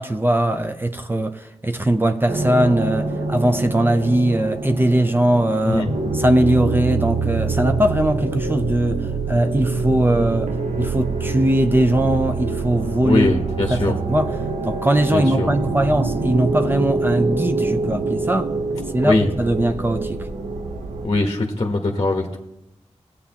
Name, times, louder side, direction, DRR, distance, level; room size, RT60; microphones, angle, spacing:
voice 1, 0.0-5.8 6.1-13.4 13.7-14.3 14.6-18.5 18.9-20.3, right 1 dB, 20° right, 0.5 m, -20 dB
sound 1, 2.3-21.1, right 3 dB, 85° right, 0.9 m, -25 dB
voice 2, 13.0-14.0 15.1-15.5 19.0-19.3 21.0-22.4, left 2 dB, 40° left, 1.0 m, -21 dB
17.0 x 8.2 x 2.9 m
wide cardioid pair, 80°, 12 cm